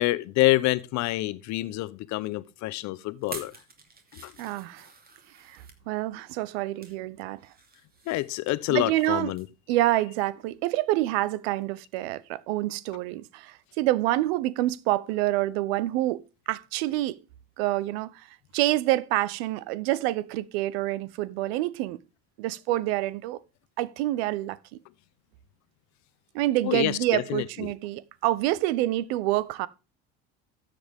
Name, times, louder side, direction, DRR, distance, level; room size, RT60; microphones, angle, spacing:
voice 1, 0.0-3.5 4.1-4.3 8.1-9.5 26.6-27.7, left 18 dB, 65° left, 0.8 m, -27 dB
sound 1, 3.2-5.8 6.4-7.0 7.4-9.1 9.4-9.6 10.0-10.1, right 4 dB, 30° right, 2.6 m, -47 dB
voice 2, 4.4-4.9 5.5-7.4 8.7-9.3 9.7-17.2 17.6-18.1 18.5-22.0 22.4-23.4 23.8-24.6 26.3-29.7, right 16 dB, 80° right, 0.7 m, -27 dB
13.0 x 7.8 x 3.5 m
supercardioid pair, 80°, 30 cm